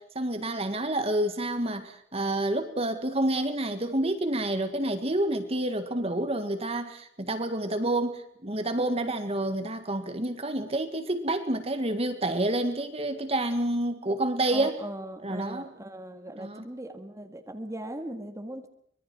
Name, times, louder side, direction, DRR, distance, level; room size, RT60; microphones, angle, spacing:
voice 1, 0.0-14.8 15.2-15.7 16.4-16.6, right 1 dB, 30° right, 7 dB, 1.8 m, -29 dB
voice 2, 14.5-18.7, right 1 dB, 15° right, 5 dB, 1.8 m, -39 dB
25.0 x 21.5 x 6.2 m, 0.65 s
head